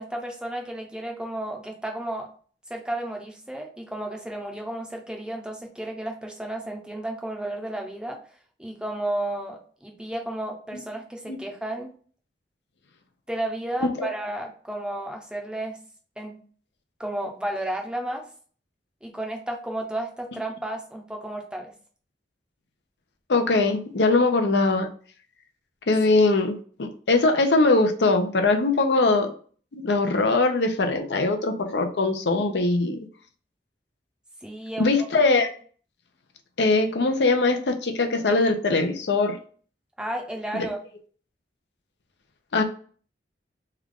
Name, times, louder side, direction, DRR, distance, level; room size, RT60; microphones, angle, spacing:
voice 1, 0.0-2.3 2.7-8.2 8.6-11.9 13.3-15.8 16.2-16.4 17.0-18.2 19.0-21.7 34.4-35.1 40.0-40.8, right 1 dB, 5° right, 2 dB, 0.6 m, -32 dB
voice 2, 23.3-24.9 25.9-29.3 29.7-33.0 34.8-35.5 36.6-39.4 40.5-40.7 42.5-42.6, left 3 dB, 75° left, 5 dB, 0.6 m, -21 dB
3.3 x 2.3 x 3.6 m, 0.44 s
head